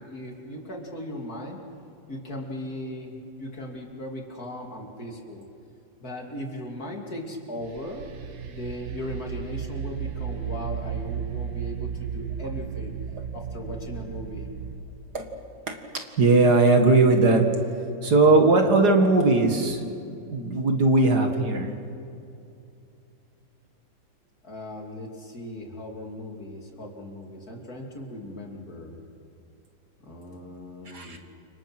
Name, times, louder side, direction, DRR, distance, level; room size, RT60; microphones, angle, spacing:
voice 1, 0.0-1.6 2.1-5.5 6.0-8.1 8.5-12.9 13.3-14.5 24.4-29.0 30.0-31.2, left 1 dB, 50° left, 1 dB, 3.3 m, -38 dB
sound 1, 7.6-14.8, right 8 dB, 75° right, 2.0 m, -34 dB
voice 2, 16.2-17.4 18.0-19.9 20.3-21.8 30.9-31.2, right 3 dB, 55° right, 4 dB, 2.4 m, -19 dB
29.5 x 25.5 x 6.2 m, 2.6 s
omnidirectional pair, 2.1 m